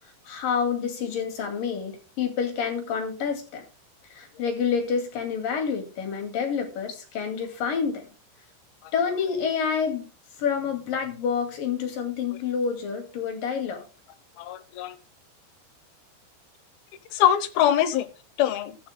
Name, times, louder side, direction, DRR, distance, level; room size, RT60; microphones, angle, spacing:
voice 1, 0.3-3.6 4.1-8.1 8.9-10.1 10.4-13.8, left 6 dB, 55° left, 4 dB, 3.6 m, -28 dB
voice 2, 14.4-15.0 17.1-18.1 18.4-18.8, left 11 dB, 70° left, 12 dB, 2.5 m, -23 dB
14.5 x 11.0 x 2.2 m, 0.35 s
omnidirectional pair, 5.1 m